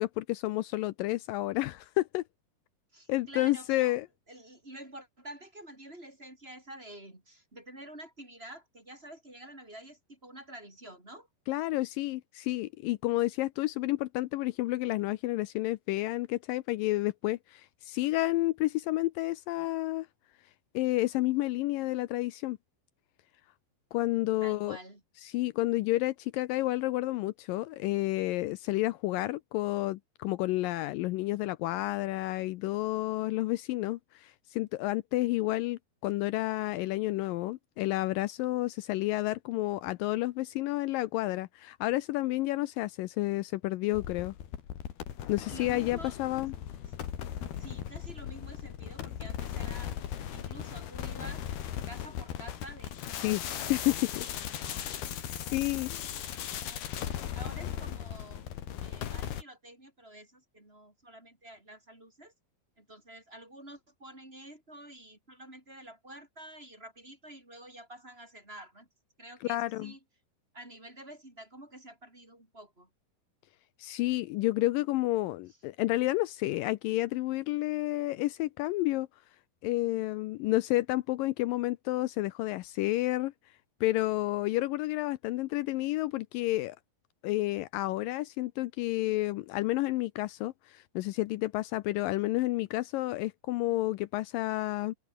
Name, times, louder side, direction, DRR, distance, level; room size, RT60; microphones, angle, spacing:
voice 1, 0.0-2.2 3.1-4.1 11.5-20.1 20.7-22.6 23.9-24.8 25.2-44.3 45.3-46.5 53.2-54.3 55.4-55.9 69.4-69.9 73.8-79.1 79.6-83.3 83.8-86.8 87.2-94.9, left 18 dB, 90° left, 2.0 m, -30 dB
voice 2, 2.9-4.0 4.3-11.3 24.4-25.0 45.5-46.2 46.9-47.0 47.4-53.8 54.6-55.9 56.3-57.0 57.3-62.3 62.8-68.9 69.2-70.0 70.5-72.9, right 1 dB, 15° right, 4.9 m, -49 dB
sound 1, 43.9-59.4, left 10 dB, 70° left, 4.2 m, -38 dB
open air
omnidirectional pair, 4.7 m